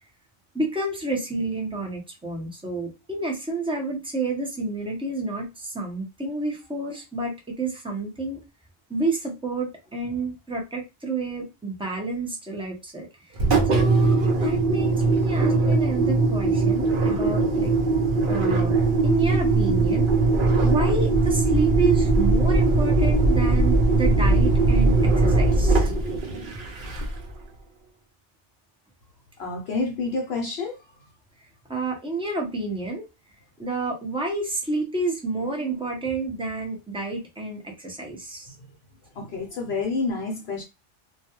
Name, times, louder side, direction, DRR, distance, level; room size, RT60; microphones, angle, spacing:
voice 1, 0.5-8.4 8.9-17.7 18.3-18.8 19.0-20.1 20.6-25.9 31.4-33.0 33.6-38.5, right 2 dB, 5° right, 0.4 m, -29 dB
Engine, 13.4-27.3, right 3 dB, 55° right, 0.7 m, -20 dB
voice 2, 29.4-30.8 39.2-40.6, left 3 dB, 65° left, 0.8 m, -28 dB
2.3 x 2.2 x 2.8 m
omnidirectional pair, 1.3 m